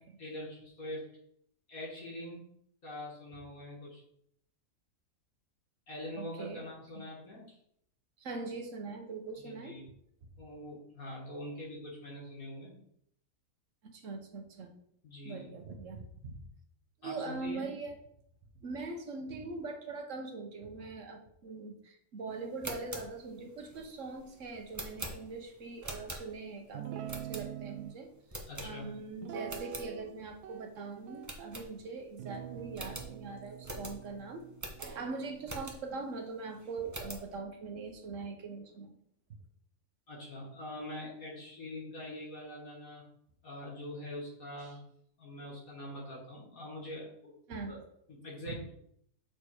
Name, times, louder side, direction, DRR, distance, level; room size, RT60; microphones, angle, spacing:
voice 1, 0.2-1.0 1.7-2.4 2.8-4.0 5.9-7.6 9.3-9.8 10.4-12.7 15.0-15.5 17.0-17.7 28.5-28.9 40.1-43.0 43.4-44.8 45.2-47.4 47.7-47.8 48.1-48.7, left 1 dB, 65° left, -4 dB, 2.2 m, -44 dB
voice 2, 6.2-6.6 6.9-7.1 8.2-9.8 13.9-14.7 15.2-16.4 17.0-18.0 18.6-28.1 28.6-34.4 34.8-39.0 47.5-47.8 48.5-48.6, right 3 dB, 60° right, 4 dB, 1.2 m, -42 dB
sound 1, 22.4-26.6 27.1-27.8 28.3-29.1 29.4-29.9 30.3-30.4 30.7-30.8 31.2-32.1 32.4-32.5 32.7-36.0 36.5-37.3, right 1 dB, 15° right, 0.7 m, -44 dB
Guitar, 26.7-28.0 29.2-30.1 30.4-31.6 32.2-35.7, right 10 dB, 85° right, 1.1 m, -45 dB
6.7 x 4.5 x 4.7 m, 0.71 s
omnidirectional pair, 1.6 m